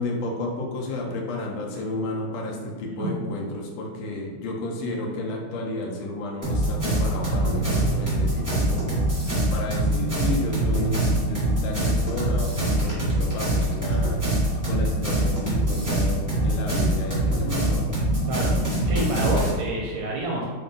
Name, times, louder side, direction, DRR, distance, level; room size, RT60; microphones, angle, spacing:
voice 1, 0.0-9.0 9.5-14.2 14.7-17.9, left 2 dB, 75° left, -1 dB, 1.3 m, -32 dB
sound 1, 6.4-19.5, right 1 dB, 25° right, 0.4 m, -24 dB
voice 2, 18.3-20.4, right 1 dB, 80° right, -3 dB, 1.4 m, -28 dB
3.7 x 2.2 x 3.8 m, 1.6 s
omnidirectional pair, 2.3 m